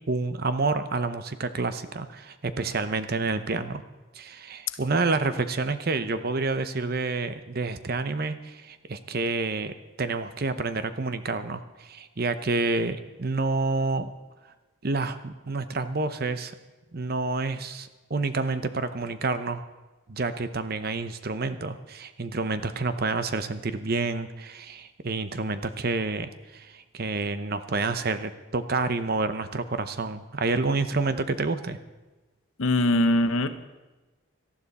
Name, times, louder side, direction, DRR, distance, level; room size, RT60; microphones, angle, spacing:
voice 1, 0.1-3.8 4.1-14.1 14.8-16.5 16.9-19.6 20.1-31.8, right 3 dB, 45° right, 11 dB, 0.7 m, -29 dB
voice 2, 32.6-33.5, left 1 dB, 75° left, 10 dB, 0.9 m, -21 dB
18.5 x 13.0 x 4.2 m, 1.2 s
head